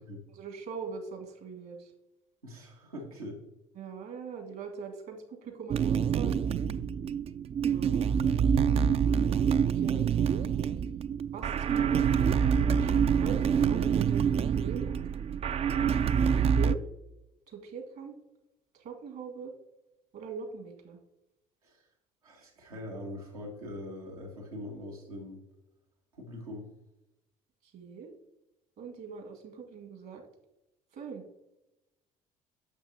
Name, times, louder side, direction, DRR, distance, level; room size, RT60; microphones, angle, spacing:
voice 1, 0.4-1.9 3.8-6.3 7.7-8.1 9.5-10.0 11.3-15.0 15.3-15.4 16.6-16.8 17.5-18.1 18.7-19.5 20.1-21.0 27.7-28.1 28.8-30.2 30.9-31.2, right 5 dB, 55° right, 3 dB, 1.9 m, -42 dB
voice 2, 2.4-3.4 21.6-21.9 22.2-25.4 26.1-26.7, left 1 dB, 85° right, -1 dB, 1.5 m, -42 dB
sound 1, 5.7-16.7, right 7 dB, 35° right, 0.4 m, -26 dB
10.0 x 6.5 x 2.8 m, 0.91 s
figure-of-eight pair, 55°, 18 cm